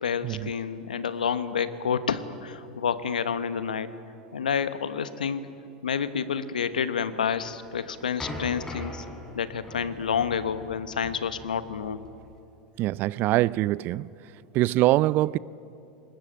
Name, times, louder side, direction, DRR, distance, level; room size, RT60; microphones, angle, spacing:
voice 1, 0.0-3.9 4.3-5.5 5.8-9.0 9.3-12.0, left 7 dB, 85° left, 1.0 m, -29 dB
sound 1, 7.4-12.4, left 1 dB, 15° left, 4.7 m, -41 dB
voice 2, 12.8-14.1 14.5-15.4, right 17 dB, 45° right, 0.4 m, -23 dB
21.5 x 19.0 x 8.6 m
hypercardioid pair, 85°, 4 cm